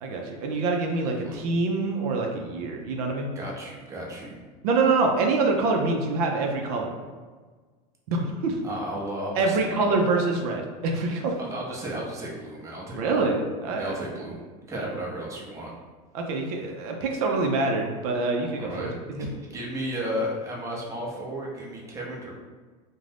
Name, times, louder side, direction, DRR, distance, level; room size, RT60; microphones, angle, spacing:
voice 1, 0.0-3.3 4.6-6.9 8.1-8.6 9.4-11.3 12.9-13.9 14.8-14.9 16.1-18.9 19.2-19.3, right 3 dB, 80° right, 2 dB, 0.5 m, -25 dB
voice 2, 3.4-4.4 8.6-10.0 11.4-13.3 13.8-14.4 14.7-15.7 18.5-22.3, equal, 15° right, -3 dB, 0.6 m, -34 dB
2.5 x 2.1 x 3.2 m, 1.4 s
supercardioid pair, 130°, 19 cm